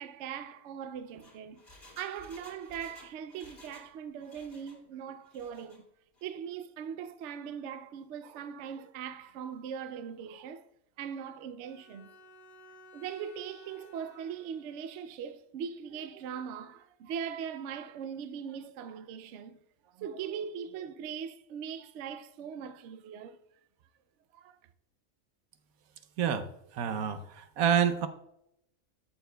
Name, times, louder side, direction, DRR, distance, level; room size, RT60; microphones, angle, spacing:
voice 1, 0.0-1.6 2.0-5.8 6.2-10.7 11.0-12.1 12.9-19.6 19.9-23.4 24.3-24.6, right 7 dB, 65° right, 0.8 m, -40 dB
Engine, 1.0-3.9 4.2-4.8 5.2-5.8 6.2-6.3, left 1 dB, 40° left, 1.9 m, -55 dB
Bowed string instrument, 11.6-15.1, left 2 dB, 60° left, 1.2 m, -57 dB
voice 2, 26.2-26.5 26.7-28.1, right 8 dB, 90° right, 1.2 m, -28 dB
12.5 x 6.7 x 2.2 m
omnidirectional pair, 1.4 m